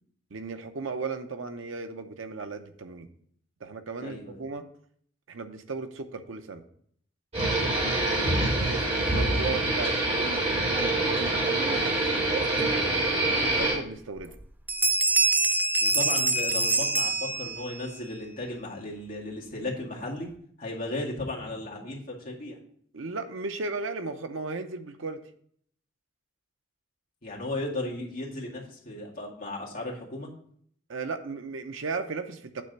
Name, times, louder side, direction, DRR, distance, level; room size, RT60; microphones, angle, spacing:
voice 1, 0.3-3.1 3.6-4.6 5.3-6.6 8.4-12.5 13.1-14.3 22.9-25.2 30.9-32.6, right 4 dB, 85° right, 8 dB, 0.7 m, -36 dB
voice 2, 4.0-4.4 15.8-20.3 20.6-22.6 27.2-30.3, left 2 dB, 50° left, -3 dB, 2.0 m, -35 dB
sound 1, 7.3-13.8, right 2 dB, 35° right, 2.5 m, -25 dB
Bell, 13.6-13.7 14.2-14.4 14.7-17.8, right 3 dB, 10° right, 0.3 m, -25 dB
8.5 x 3.4 x 6.6 m, 0.63 s
head